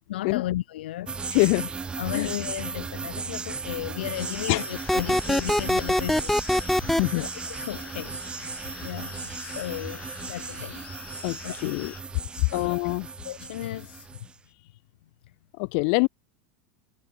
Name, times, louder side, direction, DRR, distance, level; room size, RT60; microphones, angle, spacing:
voice 1, 0.1-1.2 2.0-7.3 7.6-10.8 11.4-11.8 12.3-12.7 13.2-14.3, left 14 dB, 85° left, 0.5 m, -35 dB
sound 1, 1.1-14.3, right 5 dB, 20° right, 1.3 m, -36 dB
voice 2, 1.3-1.7 2.1-2.3 4.5-4.6 7.0-7.2 11.2-11.9 12.5-13.1 15.6-16.1, left 40 dB or more, 60° left, 0.9 m, -24 dB
sound 2, 4.1-12.0, left 7 dB, 25° left, 2.0 m, -44 dB
sound 3, 4.9-7.0, left 1 dB, 5° left, 0.5 m, -22 dB
supercardioid pair, 115°, 5 cm